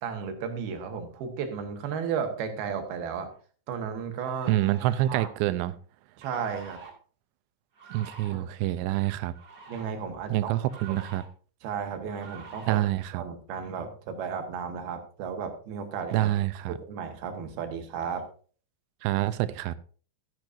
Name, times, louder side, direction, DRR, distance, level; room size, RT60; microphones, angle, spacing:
voice 1, 0.0-3.3 3.7-4.5 5.1-5.3 6.2-6.8 8.3-8.5 9.7-10.5 11.6-12.8 13.1-16.3 16.8-18.3, right 6 dB, 65° right, 3.1 m, -34 dB
sound 1, 3.3-3.4 4.2-5.4 6.2-6.9 7.7-8.4 9.3-9.8 10.7-11.3 12.1-12.8, right 5 dB, 35° right, 1.8 m, -47 dB
voice 2, 4.5-5.8 7.9-9.3 10.3-11.2 12.7-13.2 16.1-16.7 19.0-19.8, right 15 dB, 85° right, 2.8 m, -27 dB
13.0 x 10.5 x 2.6 m
omnidirectional pair, 5.1 m